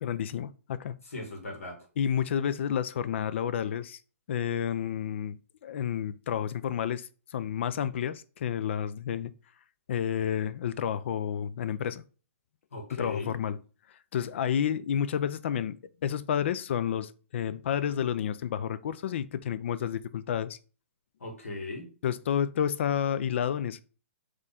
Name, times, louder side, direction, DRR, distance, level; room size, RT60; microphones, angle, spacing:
voice 1, 0.0-1.0 2.0-4.0 4.3-9.3 9.9-12.0 12.9-13.6 14.1-20.6 22.0-23.8, left 9 dB, 60° left, 0.4 m, -30 dB
voice 2, 1.1-1.8 12.7-13.3 21.2-21.9, left 2 dB, 85° left, 1.7 m, -38 dB
4.3 x 3.1 x 3.5 m
hypercardioid pair, 140°, 7 cm